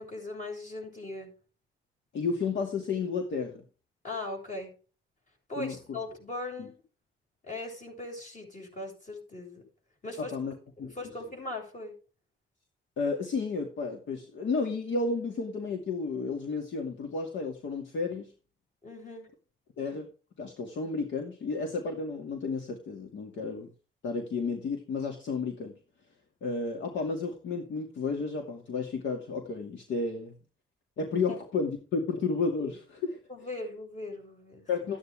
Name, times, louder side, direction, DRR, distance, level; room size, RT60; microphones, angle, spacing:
voice 1, 0.0-1.3 4.0-4.7 5.5-6.8 7.4-9.6 10.0-10.3 10.8-11.9 18.8-19.3 31.3-31.4 33.3-34.7, left 2 dB, 40° left, 1 dB, 7.3 m, -39 dB
voice 2, 2.1-3.6 5.6-6.0 6.6-6.7 10.3-10.5 10.8-10.9 13.0-18.3 19.8-20.1 20.4-23.7 24.0-25.8 26.4-30.3 31.0-33.2 34.7-35.0, left 4 dB, 70° left, 3 dB, 2.4 m, -32 dB
14.0 x 9.6 x 3.6 m, 0.36 s
cardioid pair, 90°, 20 cm